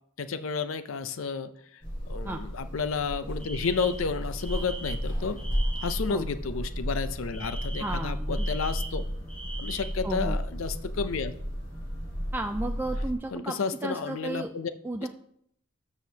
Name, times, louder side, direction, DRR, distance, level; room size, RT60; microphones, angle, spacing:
voice 1, 0.2-1.5 2.1-5.4 5.8-9.0 9.6-11.3 13.3-14.7 15.0-15.1, left 5 dB, 80° left, 12 dB, 0.5 m, -31 dB
sound 1, 1.8-13.1, equal, 60° left, 3.6 m, -33 dB
Alarm, 3.4-6.1 7.3-10.1, right 3 dB, 5° left, 1.0 m, -42 dB
voice 2, 7.8-8.5 10.0-10.4 12.3-13.5 13.8-14.5 14.8-15.1, right 2 dB, 10° right, 4 dB, 0.3 m, -33 dB
12.5 x 6.3 x 2.8 m, 0.68 s
head